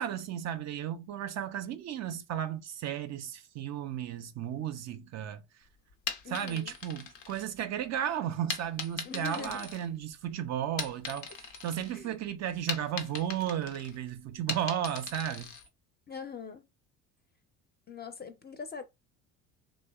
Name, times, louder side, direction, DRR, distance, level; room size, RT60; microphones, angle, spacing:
voice 1, 0.0-5.7 6.3-15.5, right 10 dB, 40° right, 0.4 m, -34 dB
sound 1, 5.9-7.9 8.5-10.3 10.6-11.9 12.3-15.7, left 6 dB, 80° left, 0.7 m, -39 dB
voice 2, 6.2-6.7 9.0-9.7 11.9-12.2 16.1-16.6 17.9-18.8, left 5 dB, 25° left, 0.5 m, -42 dB
2.8 x 2.0 x 2.3 m
hypercardioid pair, 70°, 42 cm